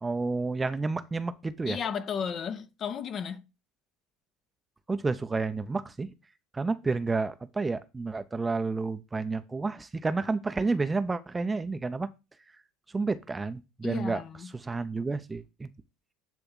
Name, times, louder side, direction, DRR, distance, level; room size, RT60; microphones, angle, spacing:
voice 1, 0.0-1.8 4.9-6.1 6.5-12.1 12.9-14.2 14.5-15.7, right 3 dB, 15° right, 0.7 m, -30 dB
voice 2, 1.7-3.4 13.8-14.5, left 7 dB, 40° left, 0.9 m, -34 dB
10.0 x 3.4 x 5.5 m
figure-of-eight pair, 70°, 0 cm